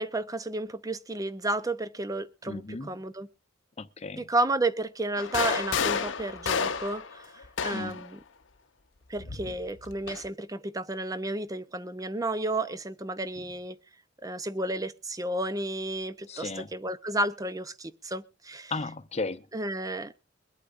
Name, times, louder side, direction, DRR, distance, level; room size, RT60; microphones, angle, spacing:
voice 1, 0.0-2.6 2.9-3.3 4.2-8.2 9.1-13.8 14.2-18.7 19.5-20.1, right 2 dB, 20° right, 0.8 m, -32 dB
voice 2, 2.5-3.0 3.8-4.3 7.7-8.0 16.3-16.7 18.7-19.5, left 3 dB, 35° left, 0.8 m, -35 dB
sound 1, 5.2-8.1 9.2-10.3, left 6 dB, 80° left, 0.9 m, -30 dB
23.0 x 8.4 x 2.6 m
head